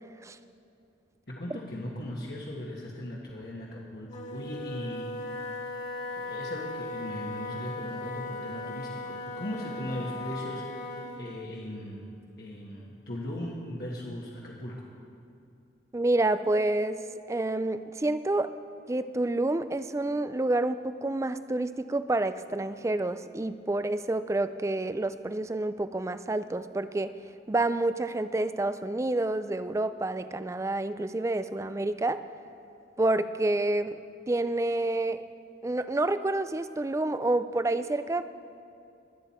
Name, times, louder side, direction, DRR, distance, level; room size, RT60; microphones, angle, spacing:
voice 1, 1.3-5.4 6.2-12.1 12.4-14.9, left 1 dB, 60° left, -4 dB, 1.5 m, -38 dB
Wind instrument woodwind instrument, 4.0-11.3, left 2 dB, 40° left, 1.9 m, -38 dB
voice 2, 15.9-17.0 17.3-18.5 18.9-27.1 27.5-32.2 33.0-34.0 34.3-35.2 35.6-38.3, right 2 dB, 15° right, 13 dB, 0.3 m, -28 dB
22.0 x 9.0 x 4.3 m, 2.6 s
head